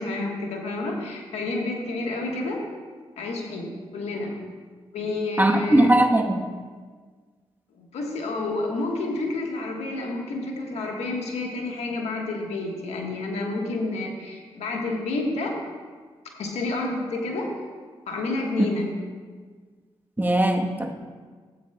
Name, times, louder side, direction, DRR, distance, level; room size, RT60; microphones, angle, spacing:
voice 1, 0.0-2.6 3.2-4.4 4.9-5.9 7.8-15.6 16.4-17.5 18.1-18.9, left 2 dB, 85° left, 0 dB, 1.3 m, -29 dB
voice 2, 5.4-6.5 20.2-20.9, right 1 dB, 15° right, 3 dB, 1.1 m, -20 dB
14.5 x 8.4 x 2.2 m, 1.5 s
supercardioid pair, 45°, 11 cm